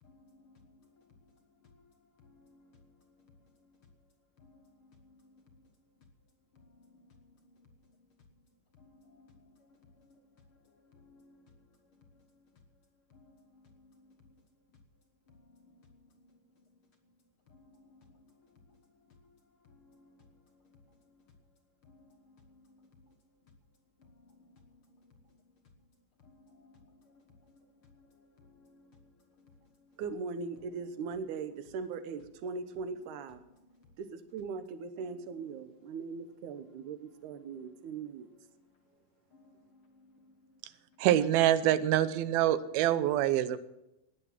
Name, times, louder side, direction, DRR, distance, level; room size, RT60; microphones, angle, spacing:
voice 1, 0.0-2.9 3.3-3.4 4.4-5.7 6.5-7.9 8.7-11.6 12.1-12.2 13.1-14.4 15.3-16.6 17.5-19.4 19.6-21.2 21.8-23.1 24.0-25.4 26.2-29.5 29.8-30.0 33.6-33.9 37.4-37.6 39.3-40.6, left 3 dB, 60° left, 3 dB, 1.4 m, -62 dB
voice 2, 30.0-33.4 34.0-38.3, right 5 dB, 65° right, 11 dB, 2.3 m, -40 dB
voice 3, 41.0-43.6, right 12 dB, 90° right, 14 dB, 2.7 m, -25 dB
17.5 x 9.9 x 7.4 m, 0.90 s
omnidirectional pair, 4.2 m